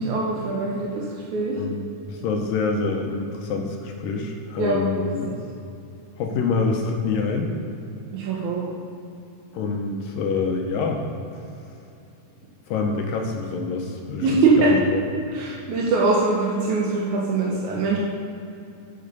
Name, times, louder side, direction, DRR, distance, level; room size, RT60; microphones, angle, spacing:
voice 1, 0.0-1.6 4.6-5.3 8.1-8.7 14.2-14.7 15.3-18.0, right 3 dB, 65° right, -3 dB, 2.0 m, -23 dB
voice 2, 2.1-5.3 6.2-7.6 9.5-11.0 12.7-15.0, left 4 dB, 75° left, 2 dB, 2.3 m, -26 dB
10.5 x 8.5 x 5.4 m, 2.8 s
omnidirectional pair, 4.5 m